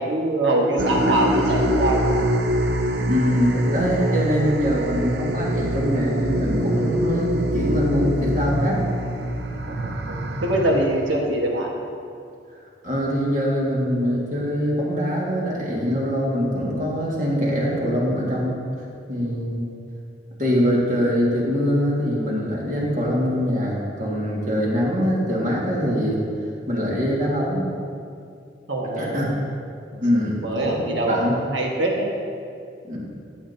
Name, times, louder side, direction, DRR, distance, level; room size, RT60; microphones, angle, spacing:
voice 1, 0.0-2.3 9.5-11.7 28.7-29.3 29.9-30.0 30.4-32.1, right 1 dB, 90° right, -1 dB, 1.4 m, -24 dB
sound 1, 0.8-11.4, right 1 dB, 60° right, 0.5 m, -24 dB
voice 2, 3.0-8.8 12.8-18.6 19.1-19.6 20.4-26.2 26.7-27.7 29.0-29.3 30.0-30.8 31.1-31.4 32.8-33.0, equal, 45° right, -4 dB, 1.8 m, -23 dB
13.0 x 7.5 x 2.7 m, 2.4 s
head